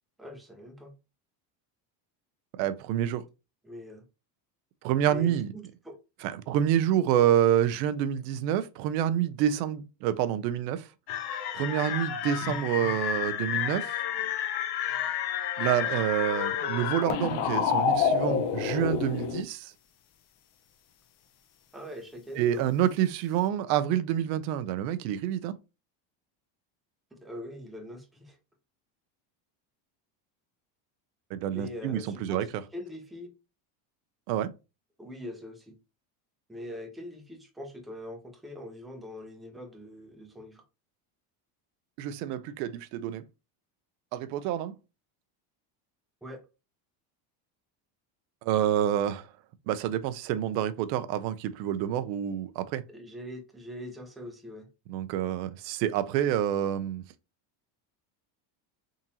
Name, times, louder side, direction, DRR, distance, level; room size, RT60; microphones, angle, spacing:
voice 1, 0.2-0.9 3.6-4.0 5.0-6.0 21.7-22.7 27.1-28.4 31.5-33.3 35.0-35.8 36.5-40.6 46.2-46.4 52.9-54.7, left 1 dB, ahead, 0.5 m, -43 dB
voice 2, 2.6-3.2 4.8-5.5 6.2-10.9 11.5-13.9 15.6-19.7 22.4-25.5 31.3-32.5 34.3-34.5 42.0-43.2 44.1-44.7 48.4-49.3 49.7-52.8 54.9-57.1, right 10 dB, 85° right, 0.6 m, -28 dB
sound 1, 11.1-19.4, left 8 dB, 55° left, 0.7 m, -29 dB
3.7 x 2.7 x 2.8 m
cardioid pair, 125°, 49 cm